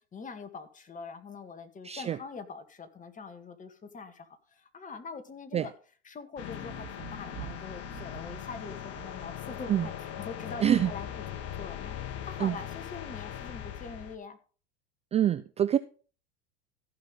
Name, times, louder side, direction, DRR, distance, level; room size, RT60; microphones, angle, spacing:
voice 1, 0.1-5.7 6.0-12.0 12.2-14.4, left 5 dB, 25° left, 2.0 m, -44 dB
voice 2, 1.8-2.2 5.5-5.7 9.7-9.9 10.6-10.9 12.4-12.6 15.1-15.8, right 10 dB, 20° right, 0.4 m, -25 dB
sound 1, 6.4-14.2, left 10 dB, 45° left, 1.7 m, -40 dB
Thunder, 6.5-10.4 11.7-11.8, right 15 dB, 65° right, 2.0 m, -48 dB
14.5 x 5.8 x 5.4 m
hypercardioid pair, 100°, 34 cm